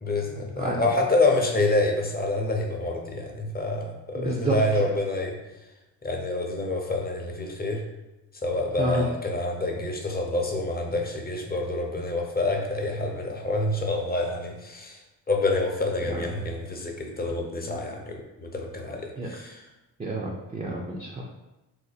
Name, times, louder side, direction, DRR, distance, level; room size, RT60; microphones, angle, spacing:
voice 1, 0.0-5.4 6.0-7.8 8.4-15.0 15.3-19.6, left 2 dB, 20° left, 1 dB, 0.7 m, -27 dB
voice 2, 0.6-1.1 4.1-4.8 8.8-9.0 16.0-16.3 19.2-19.3 20.0-21.2, right 1 dB, 15° right, -1 dB, 0.5 m, -29 dB
2.7 x 2.1 x 4.0 m, 1.0 s
supercardioid pair, 60°, 45 cm